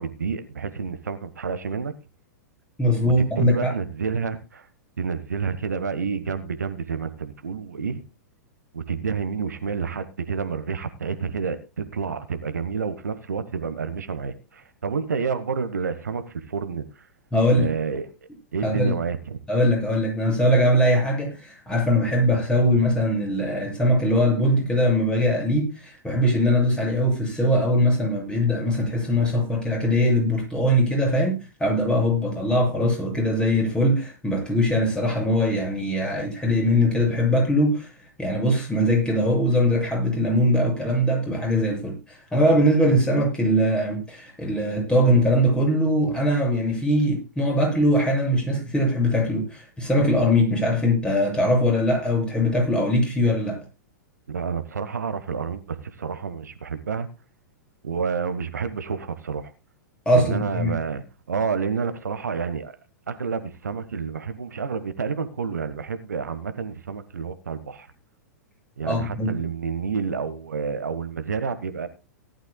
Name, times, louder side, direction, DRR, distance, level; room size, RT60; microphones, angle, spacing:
voice 1, 0.0-1.9 3.0-4.7 5.0-8.0 8.7-17.1 17.5-18.1 18.5-19.4 54.3-57.1 57.8-59.5 60.1-62.7 63.1-67.9 68.8-71.9, right 5 dB, 70° right, 11 dB, 1.3 m, -29 dB
voice 2, 2.8-3.7 17.3-17.7 18.6-18.9 19.5-37.9 38.2-53.6 60.1-60.7 68.8-69.3, equal, 10° left, 0 dB, 7.6 m, -21 dB
18.0 x 12.0 x 2.3 m, 0.30 s
figure-of-eight pair, 100°, 9 cm